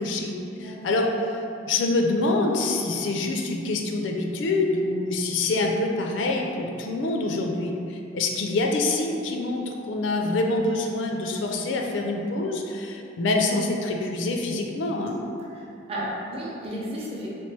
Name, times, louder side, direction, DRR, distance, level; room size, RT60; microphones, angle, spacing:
voice 1, 0.0-1.4 1.7-15.2, left 2 dB, 75° left, 2 dB, 0.4 m, -26 dB
voice 2, 0.6-1.0 15.5-17.3, equal, 30° right, -5 dB, 0.6 m, -34 dB
3.0 x 2.8 x 3.3 m, 2.6 s
head